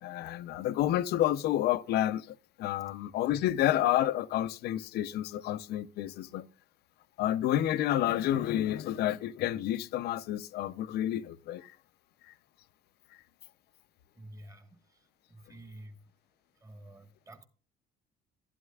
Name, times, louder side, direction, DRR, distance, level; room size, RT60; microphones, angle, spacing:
voice 1, 0.0-6.5 7.2-11.8 12.2-12.3, left 12 dB, 70° left, 0.5 m, -30 dB
voice 2, 14.1-16.0 16.5-17.5, right 1 dB, 20° right, 1.3 m, -51 dB
12.0 x 11.0 x 2.3 m
cardioid pair, 110°, 17 cm